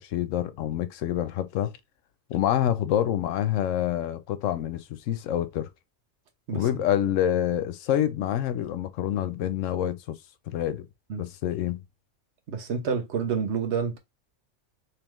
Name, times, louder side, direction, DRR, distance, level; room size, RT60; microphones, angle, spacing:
voice 1, 0.0-1.7 2.3-5.7 6.5-10.2 10.5-10.9 11.2-11.8, left 11 dB, 90° left, 0.9 m, -27 dB
voice 2, 12.5-14.0, right 6 dB, 65° right, 1.1 m, -28 dB
3.5 x 3.1 x 3.0 m
omnidirectional pair, 1.3 m